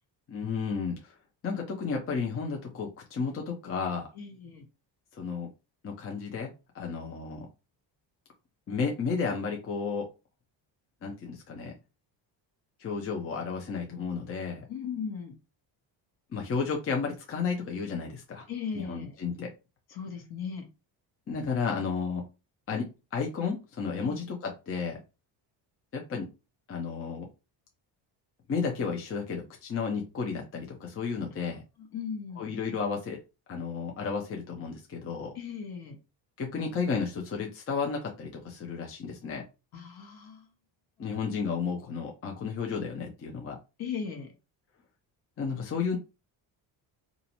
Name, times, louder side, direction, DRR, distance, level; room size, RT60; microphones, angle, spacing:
voice 1, 0.3-1.1 1.4-4.1 5.1-5.5 5.8-7.5 8.7-10.1 11.0-11.7 12.8-14.6 16.3-18.5 18.7-19.5 21.3-22.3 22.7-25.0 25.9-26.3 26.7-27.3 28.5-31.6 32.4-33.2 33.5-35.3 36.4-39.4 41.0-43.6 45.4-46.0, left 5 dB, 30° left, 1 dB, 0.6 m, -32 dB
voice 2, 4.1-4.6 14.7-15.3 18.5-19.2 19.9-20.7 24.0-24.3 31.8-32.5 35.3-36.0 39.7-40.5 43.8-44.3, left 6 dB, 55° left, 4 dB, 0.9 m, -37 dB
2.5 x 2.0 x 2.8 m, 0.28 s
cardioid pair, 110°, 45 cm